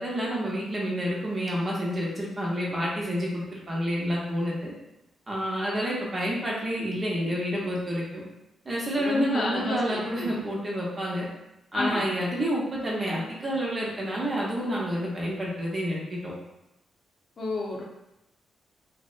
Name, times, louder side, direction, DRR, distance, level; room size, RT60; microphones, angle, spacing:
voice 1, 0.0-4.7 5.3-8.2 8.7-11.2 11.7-16.3, equal, 35° right, -4 dB, 0.8 m, -29 dB
voice 2, 9.0-10.4 11.7-12.0 17.4-17.8, left 2 dB, 55° left, -2 dB, 0.6 m, -30 dB
2.6 x 2.1 x 2.5 m, 0.92 s
cardioid pair, 65°, 0 cm